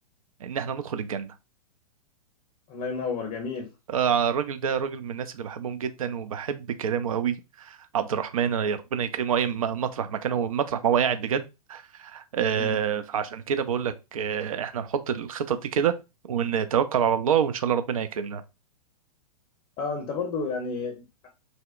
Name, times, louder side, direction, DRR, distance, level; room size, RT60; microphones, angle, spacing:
voice 1, 0.4-1.3 3.9-16.0 16.3-18.4, right 8 dB, 60° right, 0.4 m, -27 dB
voice 2, 2.7-3.7 12.5-12.8 19.8-21.3, left 4 dB, 25° left, 0.6 m, -31 dB
2.7 x 2.1 x 2.4 m
figure-of-eight pair, 110°, 20 cm